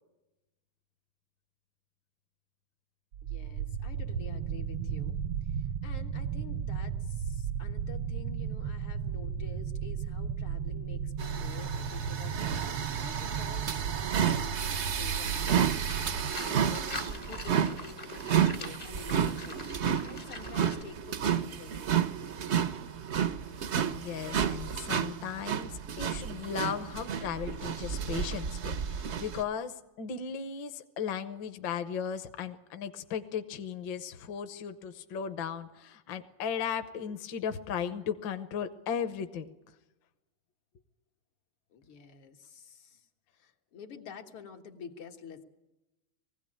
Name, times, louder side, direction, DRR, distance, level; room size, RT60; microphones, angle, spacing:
sound 1, 3.1-16.3, right 7 dB, 85° right, 1.8 m, -35 dB
voice 1, 3.2-5.2 5.5-15.7 16.0-19.6 20.0-22.1 41.7-43.1 43.3-45.4, left 6 dB, 80° left, 4 dB, 2.4 m, -49 dB
sound 2, 11.2-29.4, right 8 dB, 70° right, 0.6 m, -31 dB
Livestock farm animals working animals, 15.2-20.8, left 3 dB, 35° left, 0.7 m, -44 dB
voice 2, 23.9-39.5, left 7 dB, 65° left, 9 dB, 1.5 m, -36 dB
21.0 x 16.0 x 8.7 m, 1.0 s
omnidirectional pair, 2.3 m